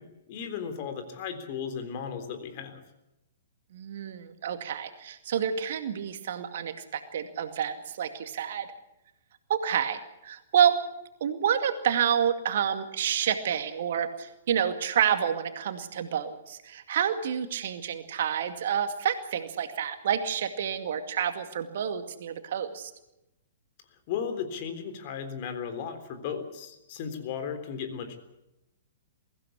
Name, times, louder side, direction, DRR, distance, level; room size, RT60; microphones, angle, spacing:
voice 1, 0.0-2.8 24.1-28.2, left 7 dB, 45° left, 8 dB, 3.6 m, -35 dB
voice 2, 3.7-8.7 9.5-10.8 11.2-22.9, right 8 dB, 55° right, 8 dB, 2.2 m, -28 dB
23.0 x 16.0 x 8.5 m, 0.92 s
figure-of-eight pair, 110°, 0 cm